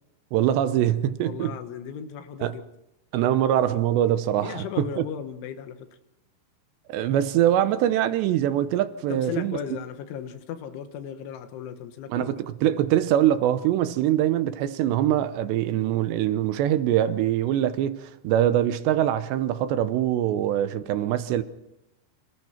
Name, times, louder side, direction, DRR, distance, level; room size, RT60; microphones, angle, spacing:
voice 1, 0.3-1.5 2.4-2.5 3.1-5.0 6.9-9.6 12.1-21.4, right 11 dB, 75° right, 2.9 m, -23 dB
voice 2, 1.2-2.6 4.4-5.9 9.1-12.3, left 8 dB, 85° left, 3.8 m, -36 dB
28.0 x 26.0 x 4.4 m
omnidirectional pair, 5.3 m